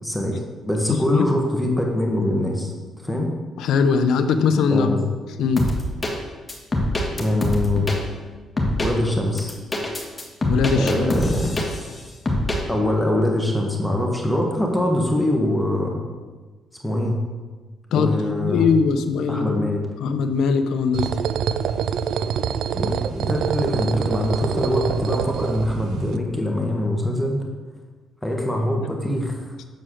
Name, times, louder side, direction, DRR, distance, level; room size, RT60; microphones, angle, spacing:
voice 1, 0.0-2.7 3.0-3.3 4.7-5.0 7.2-7.9 8.8-9.5 10.7-11.7 12.7-16.0 16.8-17.2 17.9-18.7 19.3-19.8 22.7-27.4 28.2-29.6, left 1 dB, 5° left, 0 dB, 1.5 m, -23 dB
voice 2, 3.6-5.0 5.4-5.6 10.4-11.1 17.9-18.1 18.4-19.7 20.0-21.2, left 5 dB, 80° left, 9 dB, 0.6 m, -20 dB
sound 1, 5.6-6.1 6.5-8.0 8.6-8.9 9.4-11.9 12.3-12.6, left 1 dB, 20° left, 1.6 m, -24 dB
sound 2, 20.9-26.2, right 7 dB, 75° right, 0.4 m, -25 dB
7.4 x 4.6 x 6.4 m, 1.3 s
cardioid pair, 90°, 0 cm